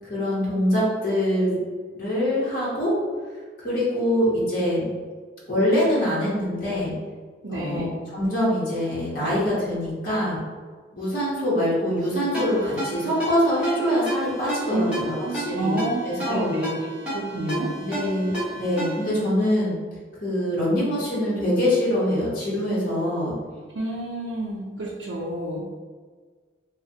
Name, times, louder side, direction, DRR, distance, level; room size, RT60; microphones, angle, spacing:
voice 1, 0.0-1.6 1.9-3.0 3.6-4.9 5.5-6.9 7.5-10.4 10.9-16.5 17.8-19.7 20.2-23.3, equal, 50° left, -8 dB, 0.9 m, -24 dB
voice 2, 7.4-7.9 14.7-15.0 15.3-16.7 17.1-17.7 23.7-25.6, right 1 dB, 75° right, -6 dB, 0.5 m, -29 dB
Ringtone, 12.3-19.2, right 1 dB, 5° right, 1.0 m, -32 dB
3.1 x 2.1 x 2.7 m, 1.5 s
head